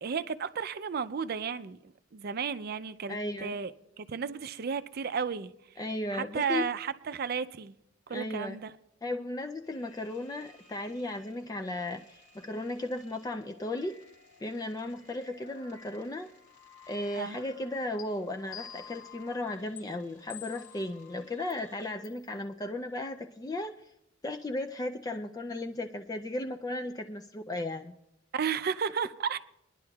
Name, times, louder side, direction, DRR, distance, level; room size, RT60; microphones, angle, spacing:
voice 1, 0.0-5.5 6.1-7.7 8.1-8.7 17.1-17.4 28.3-29.4, right 6 dB, 50° right, 0.4 m, -33 dB
voice 2, 3.1-3.6 5.8-6.7 8.1-8.6 9.0-14.0 14.4-16.3 16.9-23.8 24.2-27.9, left 1 dB, 20° left, 0.4 m, -35 dB
sound 1, 9.7-21.9, left 5 dB, 70° left, 2.1 m, -57 dB
sound 2, 18.0-18.1 18.5-19.1 19.8-19.9 20.3-20.8 21.5-21.6 22.0-22.2, left 10 dB, 90° left, 1.4 m, -46 dB
23.5 x 10.5 x 2.3 m
head